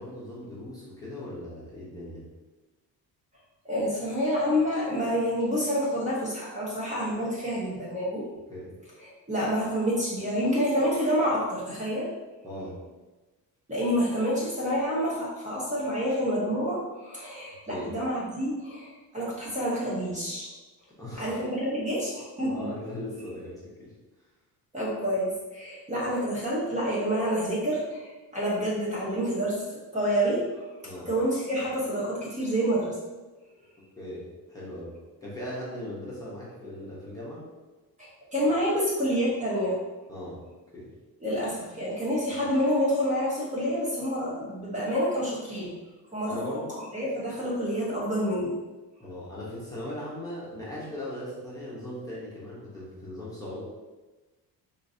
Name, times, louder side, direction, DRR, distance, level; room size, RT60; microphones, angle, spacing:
voice 1, 0.0-2.2 8.5-8.7 12.4-12.8 17.7-17.9 21.0-21.3 22.5-23.9 30.8-31.1 34.0-34.2 34.5-34.9 35.2-37.4 40.1-40.4 40.7-40.9 46.3-46.7 49.0-53.6, left 1 dB, 10° left, -9 dB, 0.8 m, -38 dB
voice 2, 3.6-8.3 9.0-12.1 13.7-20.5 21.2-22.7 24.7-29.6 29.9-30.6 31.1-32.9 38.3-39.8 41.2-45.7 46.1-46.6 46.9-48.6, equal, 20° right, -7 dB, 0.8 m, -28 dB
4.5 x 2.6 x 2.7 m, 1.2 s
cardioid pair, 160°, 38 cm